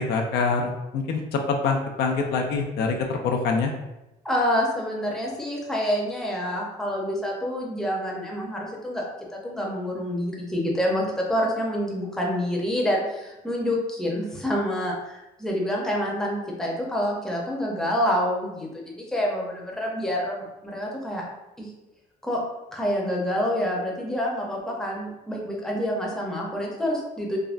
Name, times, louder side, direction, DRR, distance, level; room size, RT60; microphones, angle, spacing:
voice 1, 0.0-3.7, left 4 dB, 75° left, 2 dB, 0.4 m, -25 dB
voice 2, 4.2-21.2 21.6-21.7 22.2-22.4 22.7-27.4, equal, 5° left, -3 dB, 0.7 m, -27 dB
3.4 x 2.1 x 2.4 m, 0.96 s
cardioid pair, 110°, 17 cm